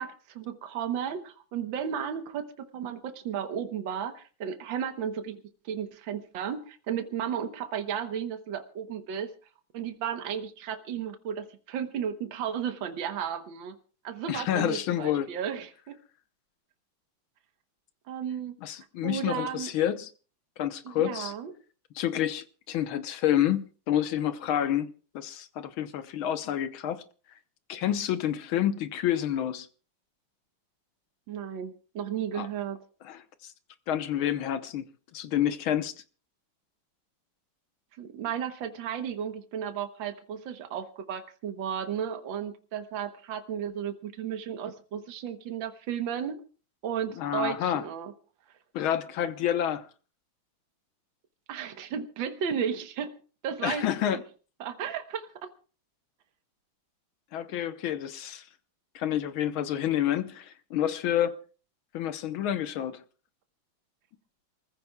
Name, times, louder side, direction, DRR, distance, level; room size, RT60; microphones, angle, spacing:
voice 1, 0.0-9.3 9.7-13.8 14.0-16.0 18.1-18.6 19.0-19.7 20.9-21.5 31.3-32.8 38.0-46.4 46.8-48.1 51.5-53.2 53.4-53.8 54.1-54.2 54.6-55.5, right 8 dB, 70° right, 1.8 m, -34 dB
voice 2, 14.3-15.3 18.6-20.1 20.6-21.3 22.0-27.0 27.7-29.7 32.4-32.5 33.1-33.5 33.9-34.9 35.1-35.9 47.2-47.8 48.7-49.9 53.6-54.2 57.3-58.5 59.0-61.4 61.9-63.0, left 11 dB, 90° left, 1.8 m, -29 dB
28.0 x 15.0 x 2.3 m
omnidirectional pair, 2.2 m